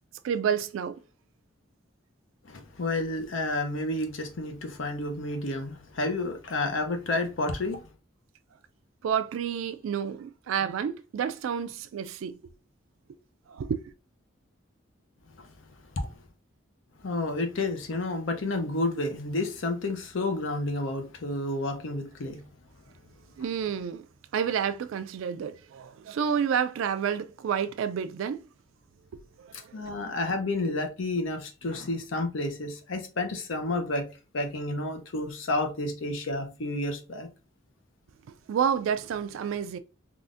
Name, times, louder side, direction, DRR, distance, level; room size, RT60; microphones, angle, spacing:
voice 1, 0.2-1.0 9.0-12.4 13.5-13.8 23.4-24.0 24.3-28.4 29.1-29.6 38.5-39.8, right 7 dB, 85° right, 0.3 m, -29 dB
voice 2, 2.4-7.8 15.4-15.5 16.0-16.1 17.0-22.4 29.7-34.1 34.3-37.3, left 2 dB, 80° left, 0.7 m, -30 dB
3.7 x 2.4 x 2.4 m
head